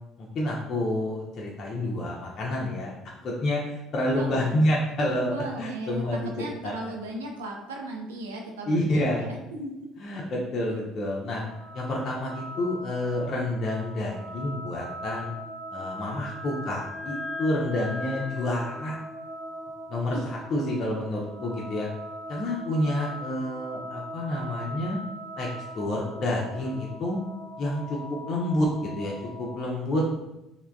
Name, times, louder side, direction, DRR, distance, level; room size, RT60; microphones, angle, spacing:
voice 1, 0.0-6.7 8.7-9.2 10.0-11.4 11.7-15.3 15.7-19.0 19.9-21.9 22.3-25.0 25.4-25.5 25.7-27.2 27.6-28.0 28.3-29.1 29.4-30.2, left 1 dB, 50° left, -3 dB, 0.5 m, -29 dB
voice 2, 4.1-4.6 5.3-9.7 20.1-20.2, right 1 dB, 85° right, 1 dB, 0.4 m, -36 dB
sound 1, 11.4-29.6, equal, 5° left, 0.6 m, -40 dB
3.3 x 2.1 x 2.2 m, 0.92 s
hypercardioid pair, 60°, 0 cm